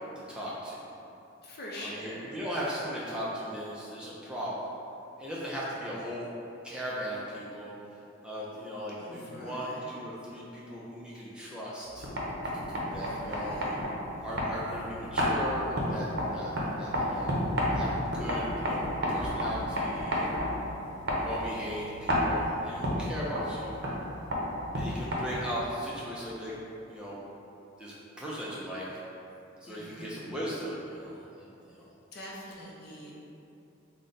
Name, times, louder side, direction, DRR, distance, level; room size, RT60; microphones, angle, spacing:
voice 1, 0.3-0.8 1.8-4.6 5.2-6.3 6.6-7.7 8.2-12.1 12.9-13.6 14.2-16.1 16.3-17.4 17.7-20.4 21.1-23.8 24.7-26.5 26.9-27.2 27.8-28.9 29.6-31.9, equal, 5° right, -7 dB, 0.4 m, -38 dB
voice 2, 1.4-2.3 9.0-9.9 12.9-13.8 29.7-30.3 32.1-33.1, left 1 dB, 50° left, -4 dB, 0.6 m, -44 dB
sound 1, 11.9-25.6, equal, 55° right, 0.6 m, -31 dB
3.8 x 2.1 x 3.8 m, 2.8 s
head